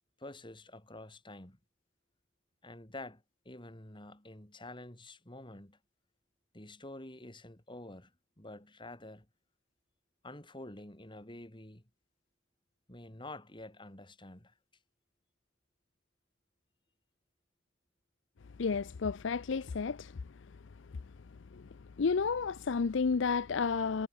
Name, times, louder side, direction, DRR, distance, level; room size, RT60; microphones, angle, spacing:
voice 1, 0.2-1.6 2.6-5.8 6.5-8.1 8.4-9.3 10.2-11.8 12.9-14.5, left 2 dB, 25° left, 3.1 m, -48 dB
voice 2, 18.6-20.2 21.5-21.7 22.0-24.1, left 5 dB, 65° left, 0.5 m, -31 dB
head